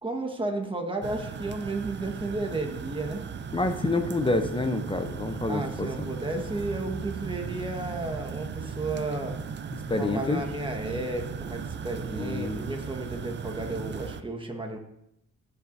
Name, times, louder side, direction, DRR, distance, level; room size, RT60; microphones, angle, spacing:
voice 1, 0.0-3.2 5.5-9.4 10.0-14.8, right 2 dB, 15° right, 3 dB, 1.5 m, -33 dB
sound 1, 1.0-14.2, right 6 dB, 35° right, 0.6 m, -37 dB
voice 2, 3.5-6.1 9.7-10.4 12.1-12.7, left 2 dB, 15° left, 7 dB, 0.7 m, -28 dB
14.0 x 5.9 x 2.7 m, 0.82 s
cardioid pair, 90°, 30 cm